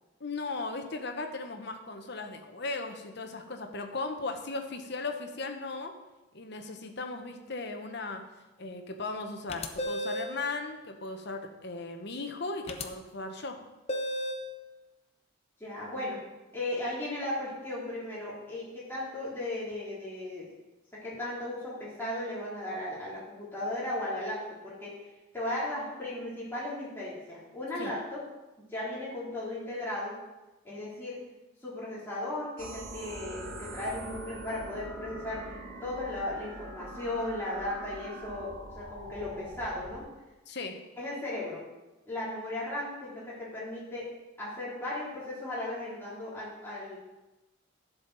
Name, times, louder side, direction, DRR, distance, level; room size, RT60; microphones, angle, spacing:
voice 1, 0.2-5.9 6.3-8.2 8.6-13.6 27.8-27.9 40.5-40.8, left 3 dB, 55° left, 5 dB, 1.0 m, -37 dB
sound 1, 9.5-10.4 12.7-12.8 13.9-14.5, equal, 30° left, 0.6 m, -33 dB
voice 2, 15.6-16.2 16.5-20.5 20.9-24.9 25.3-28.2 28.7-30.2 30.6-31.2 31.6-40.1 41.0-41.6 42.0-44.1 44.4-47.0, left 1 dB, 10° left, -8 dB, 3.2 m, -36 dB
sound 2, 32.6-40.0, right 2 dB, 75° right, 1.4 m, -43 dB
11.0 x 7.3 x 4.0 m, 1.1 s
head